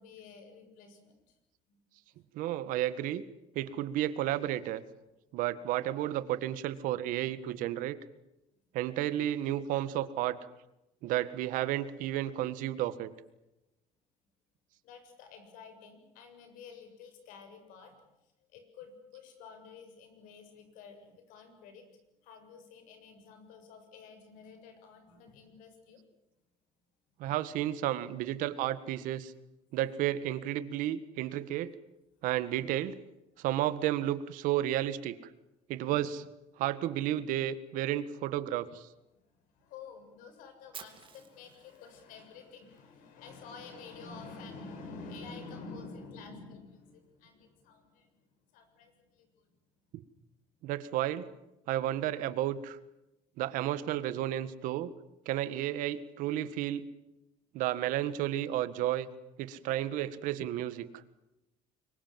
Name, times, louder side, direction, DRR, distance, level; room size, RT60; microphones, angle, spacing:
voice 1, 0.0-1.3 1.7-1.8 7.5-7.6 14.8-18.0 18.5-21.8 22.2-26.0 27.2-27.4 39.1-48.1 48.5-49.5, left 4 dB, 85° left, 7 dB, 7.2 m, -50 dB
voice 2, 2.3-3.2 3.5-4.8 5.3-8.0 8.7-10.4 11.0-13.1 27.2-29.3 29.7-31.7 32.2-33.0 33.4-35.2 35.7-36.2 36.6-38.9 50.6-51.3 51.7-52.8 53.4-54.9 55.2-56.9 57.5-59.1 59.4-60.9, right 13 dB, 85° right, 14 dB, 1.7 m, -32 dB
Fire, 40.7-42.8, right 7 dB, 40° right, 3.2 m, -51 dB
25.5 x 23.0 x 7.7 m, 0.92 s
cardioid pair, 130°, 13 cm